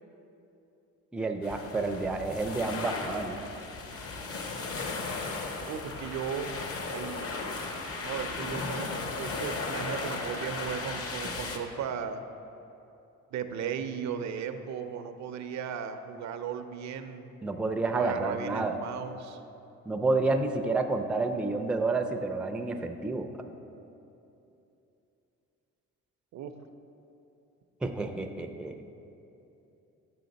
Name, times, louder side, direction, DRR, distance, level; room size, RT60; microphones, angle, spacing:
voice 1, 1.1-3.4 17.4-18.8 19.9-23.3 27.8-28.8, right 3 dB, 5° right, 5 dB, 0.4 m, -29 dB
sound 1, 1.4-11.6, left 3 dB, 50° left, 0.8 m, -36 dB
voice 2, 5.7-6.5 6.9-7.3 8.0-8.9 9.2-12.2 13.3-17.3 17.9-19.4 26.3-26.5, right 7 dB, 65° right, 9 dB, 0.5 m, -36 dB
7.7 x 5.6 x 4.0 m, 2.8 s
cardioid pair, 90°, 30 cm